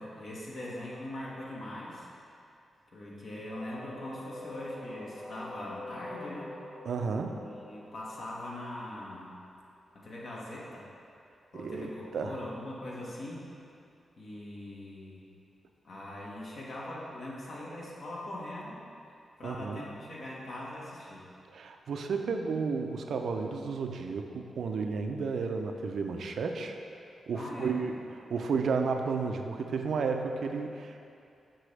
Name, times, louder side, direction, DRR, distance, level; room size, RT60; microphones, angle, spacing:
voice 1, 0.0-2.1 2.9-6.5 7.2-9.4 9.9-10.9 11.5-13.5 14.2-15.2 15.8-18.8 19.4-21.2 27.3-27.8, left 1 dB, 65° left, -5 dB, 1.4 m, -41 dB
sound 1, 3.5-9.2, left 1 dB, 35° left, 1.1 m, -46 dB
voice 2, 6.9-7.4 11.5-12.4 19.4-19.8 21.5-26.8 27.3-28.0 28.3-31.0, right 5 dB, 75° right, 4 dB, 0.4 m, -32 dB
6.3 x 5.9 x 3.3 m, 2.6 s
cardioid pair, 75°, 0 cm